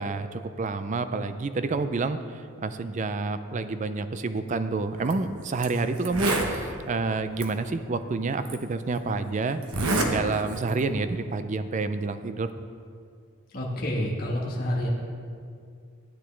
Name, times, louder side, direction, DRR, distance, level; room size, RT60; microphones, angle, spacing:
voice 1, 0.0-9.6 10.1-12.5, right 3 dB, 35° right, 10 dB, 0.4 m, -29 dB
Zipper (clothing), 5.0-5.1 5.6-5.7 6.0-6.5 7.4-7.5 8.4-8.5 9.6-10.1 10.5-10.8, right 2 dB, 80° right, 1.1 m, -26 dB
voice 2, 13.5-14.9, equal, 45° left, -3 dB, 1.3 m, -28 dB
13.5 x 9.1 x 3.3 m, 2.2 s
head